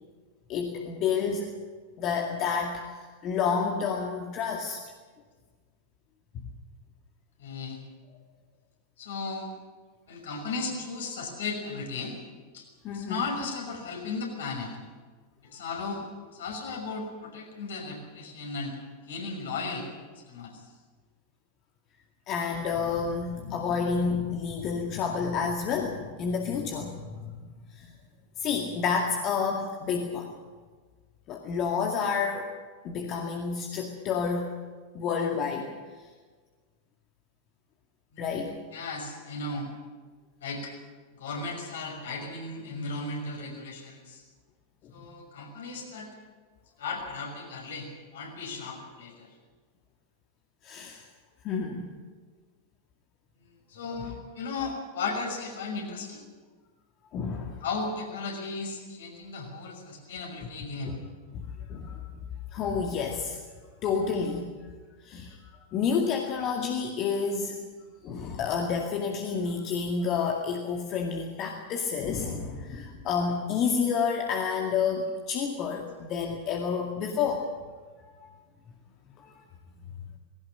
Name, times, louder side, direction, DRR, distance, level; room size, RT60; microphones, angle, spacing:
voice 1, 0.5-1.5 2.0-4.8 12.8-13.2 22.3-27.3 27.7-27.9 28.4-30.3 31.3-32.5 32.8-34.5 34.9-35.7 38.2-38.6 50.6-51.1 51.4-51.9 54.0-54.1 57.1-57.6 60.8-60.9 61.3-61.4 61.7-62.0 62.5-63.4 63.8-64.5 65.0-65.4 65.7-67.6 68.0-77.4 79.2-79.3, left 6 dB, 35° left, 2 dB, 2.1 m, -29 dB
voice 2, 7.4-7.8 9.0-9.6 10.1-12.2 12.5-14.8 15.4-16.0 16.3-18.8 19.1-19.9 20.1-20.6 38.1-38.4 38.7-39.7 40.4-40.7 41.1-44.2 44.9-46.1 46.8-49.3 53.4-56.2 57.6-61.0, left 3 dB, 60° left, 1 dB, 6.1 m, -36 dB
20.0 x 17.5 x 8.9 m, 1.4 s
figure-of-eight pair, 90°, 0 cm